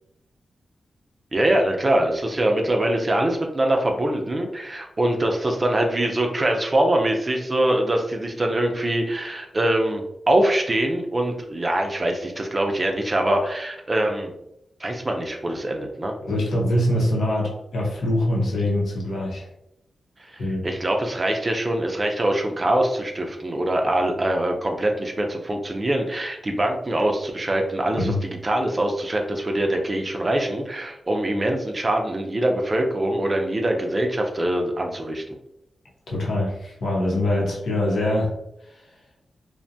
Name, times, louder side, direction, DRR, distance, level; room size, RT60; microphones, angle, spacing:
voice 1, 1.3-14.3 14.8-16.1 20.3-35.4, right 1 dB, 35° right, 3 dB, 0.4 m, -23 dB
voice 2, 16.2-19.5 20.4-20.7 28.0-28.2 36.1-38.3 38.7-38.8, left 1 dB, 85° left, -3 dB, 0.8 m, -23 dB
2.6 x 2.1 x 2.6 m, 0.81 s
cardioid pair, 70°, 0 cm